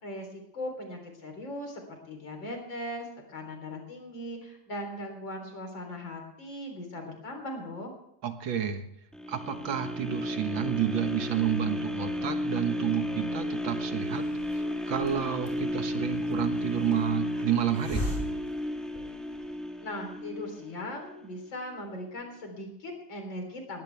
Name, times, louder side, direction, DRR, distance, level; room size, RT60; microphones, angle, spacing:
voice 1, 0.0-7.9 19.8-23.8, left 1 dB, 80° left, 3 dB, 4.5 m, -39 dB
voice 2, 8.2-8.8 9.3-14.2 14.5-18.0, right 9 dB, 85° right, 7 dB, 2.1 m, -30 dB
sound 1, 9.1-21.2 21.7-21.8, equal, ahead, 1.6 m, -33 dB
Hiss, 14.0-19.5, left 1 dB, 20° left, 4.0 m, -40 dB
20.0 x 16.0 x 3.5 m, 0.77 s
omnidirectional pair, 2.0 m